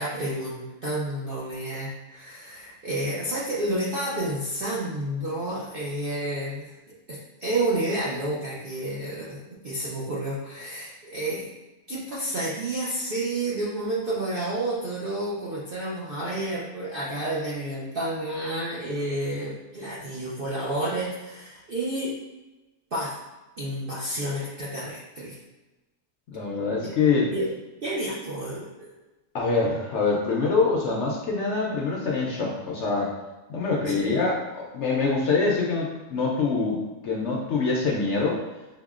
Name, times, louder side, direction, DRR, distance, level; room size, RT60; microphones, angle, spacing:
voice 1, 0.0-6.7 7.1-11.5 11.9-22.1 22.9-23.2 23.6-25.4 26.8-27.5 27.8-28.9 34.0-34.1, right 1 dB, 80° right, -6 dB, 0.5 m, -30 dB
voice 2, 26.3-27.3 29.3-33.1 33.5-38.4, left 4 dB, 70° left, -3 dB, 0.7 m, -25 dB
5.6 x 2.1 x 2.3 m, 1.1 s
omnidirectional pair, 1.7 m